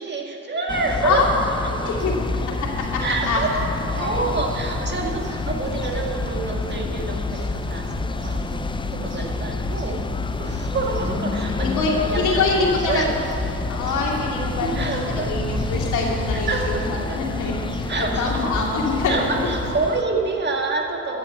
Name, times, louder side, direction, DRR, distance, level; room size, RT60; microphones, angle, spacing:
voice 1, 0.0-1.9 3.0-10.0 10.4-11.7 12.0-13.1 14.6-15.3 16.3-17.2 17.9-18.5 19.1-21.2, right 3 dB, 35° right, 0 dB, 1.9 m, -27 dB
sound 1, 0.7-20.0, left 4 dB, 15° left, 0.4 m, -29 dB
sound 2, 2.0-19.7, right 1 dB, 55° right, 2.7 m, -34 dB
voice 2, 2.6-3.6 4.0-4.2 11.5-13.0 13.7-19.5, left 4 dB, 75° left, -2 dB, 2.7 m, -25 dB
14.0 x 7.2 x 8.1 m, 3.0 s
cardioid pair, 90°, 30 cm